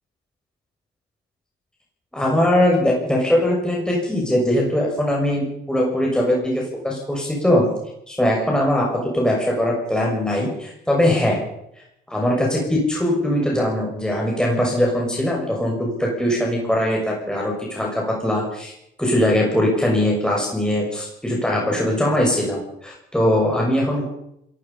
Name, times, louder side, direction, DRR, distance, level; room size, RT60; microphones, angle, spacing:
voice 1, 2.1-7.7 8.1-11.4 12.1-18.7 19.0-24.1, left 1 dB, 5° left, -2 dB, 6.6 m, -21 dB
27.0 x 18.0 x 5.6 m, 0.80 s
cardioid pair, 90°, 20 cm